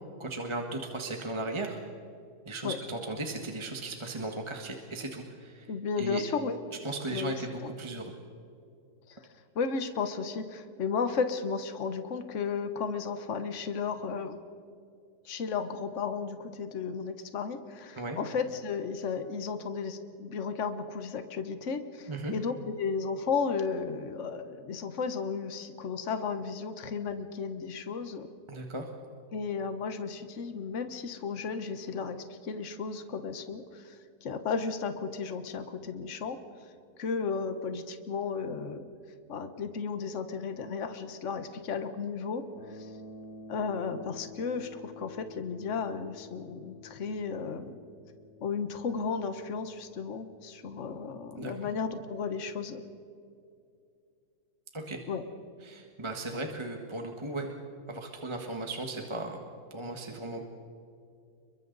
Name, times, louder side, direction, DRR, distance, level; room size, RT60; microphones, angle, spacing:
voice 1, 0.2-1.8 2.4-5.7 6.0-6.2 6.8-8.1 18.0-18.2 22.1-22.3 28.5-28.9 51.4-51.5 54.7-55.0 55.6-57.5 57.9-59.4 59.7-60.4, right 2 dB, 20° right, 2 dB, 1.5 m, -36 dB
voice 2, 5.7-6.6 7.1-7.3 7.6-7.7 9.1-9.2 9.5-14.4 15.2-28.3 29.3-36.4 37.0-38.8 39.3-42.5 42.7-42.9 43.5-47.8 48.4-52.8 55.1-55.2, left 5 dB, 50° left, 9 dB, 1.4 m, -34 dB
sound 1, 42.5-52.6, left 3 dB, 80° left, 2.1 m, -51 dB
30.0 x 22.5 x 4.0 m, 2.5 s
omnidirectional pair, 1.7 m